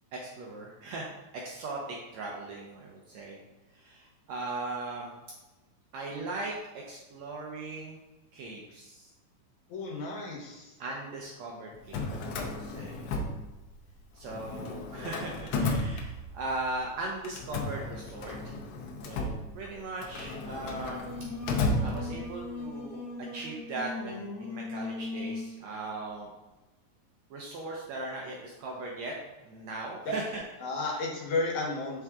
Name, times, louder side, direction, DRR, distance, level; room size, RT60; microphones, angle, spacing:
voice 1, 0.1-1.1 1.4-3.4 3.8-5.1 5.9-6.5 6.9-8.0 8.3-9.1 10.8-12.1 12.3-13.1 14.2-18.6 19.0-21.0 21.8-23.0 23.3-26.3 27.3-29.1 29.4-30.2, right 2 dB, 75° right, -1 dB, 1.7 m, -38 dB
voice 2, 9.7-10.7 30.1-30.2 30.6-32.0, left 2 dB, 70° left, -2 dB, 2.2 m, -33 dB
Drawer open or close, 11.7-13.9 14.2-16.6 17.2-22.5, left 2 dB, 85° left, 1.4 m, -34 dB
Singing, 20.7-25.6, left 3 dB, 20° left, 0.4 m, -39 dB
6.3 x 4.7 x 3.6 m, 1.1 s
omnidirectional pair, 3.7 m